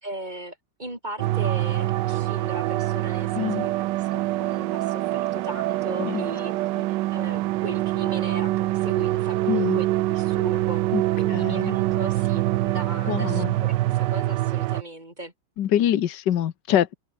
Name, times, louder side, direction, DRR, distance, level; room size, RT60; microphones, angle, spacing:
voice 1, 0.0-6.5 6.9-15.3, right 1 dB, 25° right, 5.7 m, -38 dB
sound 1, 1.2-14.8, right 16 dB, 90° right, 1.2 m, -25 dB
voice 2, 3.4-3.7 6.0-6.2 9.5-9.8 10.9-11.0 11.3-11.8 13.1-13.5 15.6-17.0, left 11 dB, 80° left, 1.7 m, -24 dB
omnidirectional pair, 1.8 m